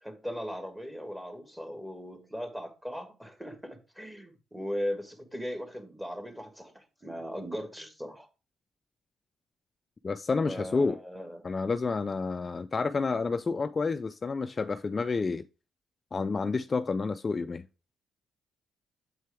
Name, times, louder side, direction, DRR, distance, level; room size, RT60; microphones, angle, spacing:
voice 1, 0.0-8.3 10.5-11.4, equal, 10° right, 1.6 m, -38 dB
voice 2, 10.0-11.0 11.4-15.4 16.1-17.7, left 4 dB, 35° left, 0.3 m, -29 dB
7.5 x 4.4 x 3.4 m
cardioid pair, 90°, 0 cm